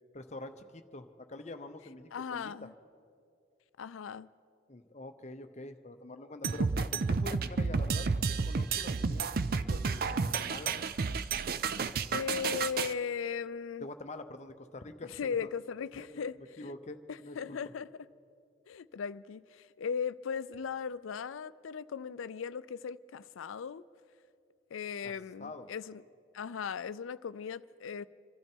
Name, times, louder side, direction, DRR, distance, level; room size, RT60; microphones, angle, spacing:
voice 1, 0.1-2.5 4.7-9.3 9.7-10.8 13.8-15.5 15.9-16.3 16.6-17.7 25.0-25.1 25.4-25.7, left 2 dB, 35° left, 0.7 m, -46 dB
voice 2, 2.1-2.7 3.8-4.3 12.1-13.9 15.1-16.6 17.1-17.9 18.7-23.8 24.7-26.0 26.3-28.0, left 6 dB, 85° left, 0.4 m, -38 dB
sound 1, 6.4-12.9, right 4 dB, 45° right, 0.4 m, -31 dB
27.0 x 12.0 x 4.5 m
head